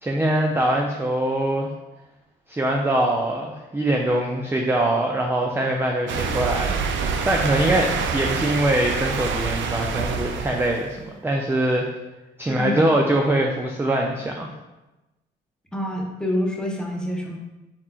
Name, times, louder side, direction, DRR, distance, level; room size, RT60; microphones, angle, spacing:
voice 1, 0.0-1.7 2.5-11.9 12.4-14.5, right 1 dB, 10° right, 1 dB, 0.4 m, -23 dB
sound 1, 6.1-11.0, right 5 dB, 70° right, 0.4 m, -26 dB
voice 2, 12.5-12.8 15.7-17.4, left 1 dB, 5° left, -1 dB, 0.7 m, -27 dB
4.3 x 3.6 x 2.3 m, 1.0 s
cardioid pair, 90°, 20 cm